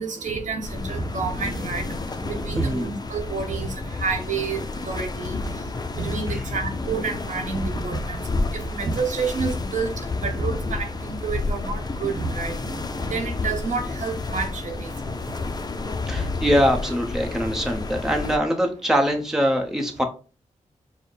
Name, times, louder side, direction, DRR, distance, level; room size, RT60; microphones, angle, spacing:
voice 1, 0.0-1.8 2.2-3.7 4.0-4.6 4.9-5.4 5.9-8.2 8.5-9.9 10.2-12.5 13.0-14.7, right 4 dB, 75° right, 3 dB, 1.0 m, -28 dB
sound 1, 0.6-18.4, left 3 dB, 30° left, 0.5 m, -30 dB
voice 2, 2.5-2.9 6.3-6.4 16.0-20.0, equal, 5° right, 2 dB, 0.9 m, -23 dB
4.9 x 2.2 x 4.0 m, 0.35 s
cardioid pair, 60°, 13 cm